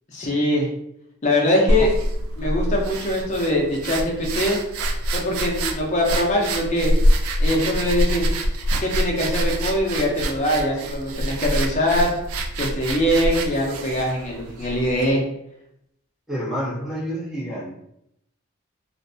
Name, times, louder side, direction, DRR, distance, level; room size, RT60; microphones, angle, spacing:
voice 1, 0.1-0.7 1.2-1.9 2.4-4.6 5.1-6.9 7.4-8.2 8.8-12.2 12.6-15.3, left 1 dB, 35° left, -1 dB, 0.5 m, -22 dB
sound 1, 1.7-15.1, equal, 80° right, 0.3 m, -25 dB
voice 2, 16.3-17.7, equal, ahead, -8 dB, 0.8 m, -28 dB
2.5 x 2.1 x 2.6 m, 0.78 s
head